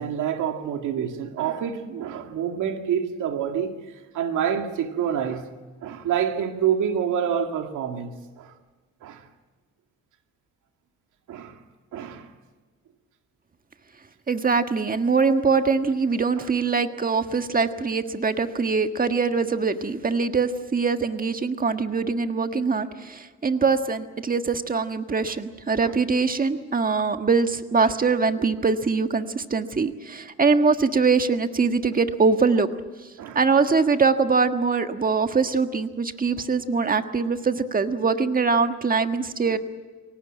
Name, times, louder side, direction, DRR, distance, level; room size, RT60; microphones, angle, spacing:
voice 1, 0.0-3.7 4.1-5.5 5.8-8.5 9.0-9.2 11.3-11.6 11.9-12.3 16.4-16.5 25.8-25.9 27.8-27.9 33.2-33.4 39.5-39.6, right 8 dB, 80° right, 2.2 m, -27 dB
voice 2, 14.3-32.7 33.3-39.6, right 4 dB, 30° right, 1.6 m, -23 dB
23.0 x 18.5 x 8.8 m
cardioid pair, 90°, 30 cm